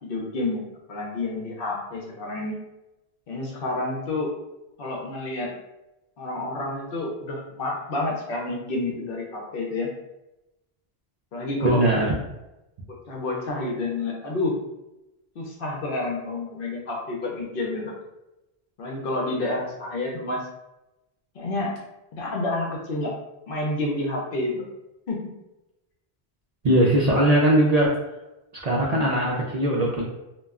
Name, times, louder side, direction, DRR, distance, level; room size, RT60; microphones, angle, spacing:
voice 1, 0.0-0.6 0.9-2.6 3.3-4.3 4.8-5.5 6.2-9.9 11.3-11.9 12.9-14.5 15.4-17.9 18.8-20.4 21.3-21.7 22.1-23.1 23.5-24.6 25.1-25.3, left 2 dB, 65° left, -1 dB, 0.8 m, -29 dB
voice 2, 11.6-12.1 26.6-27.9 28.6-30.0, right 1 dB, 55° right, -4 dB, 0.4 m, -20 dB
2.2 x 2.1 x 3.5 m, 0.96 s
omnidirectional pair, 1.1 m